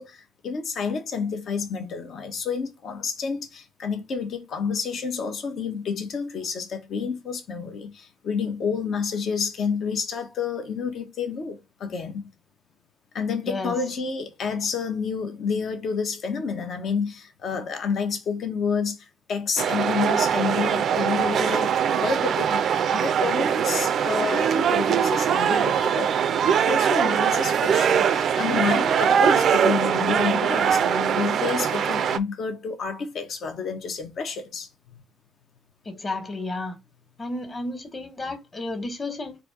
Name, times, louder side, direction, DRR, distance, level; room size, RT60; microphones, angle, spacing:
voice 1, 0.0-12.2 13.1-26.1 26.6-34.7, left 5 dB, 60° left, 1.0 m, -29 dB
sound 1, 19.6-32.2, right 8 dB, 60° right, 0.4 m, -22 dB
voice 2, 35.8-36.8 37.2-39.4, left 2 dB, 30° left, 1.5 m, -32 dB
4.1 x 2.8 x 4.7 m
hypercardioid pair, 55°, 0 cm